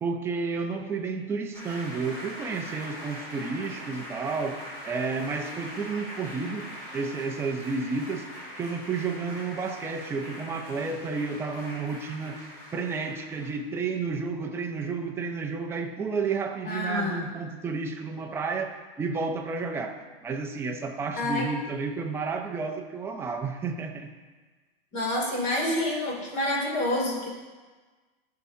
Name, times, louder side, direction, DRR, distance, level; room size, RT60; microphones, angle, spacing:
voice 1, 0.0-6.7 6.9-8.3 8.6-12.5 12.7-24.1, right 4 dB, 10° right, 2 dB, 0.5 m, -31 dB
sound 1, 1.5-13.6, equal, 10° left, 2.8 m, -42 dB
voice 2, 16.7-17.3 21.2-21.5 24.9-27.3, left 1 dB, 35° left, -2 dB, 2.6 m, -28 dB
15.0 x 5.7 x 2.7 m, 1.3 s
hypercardioid pair, 145°, 31 cm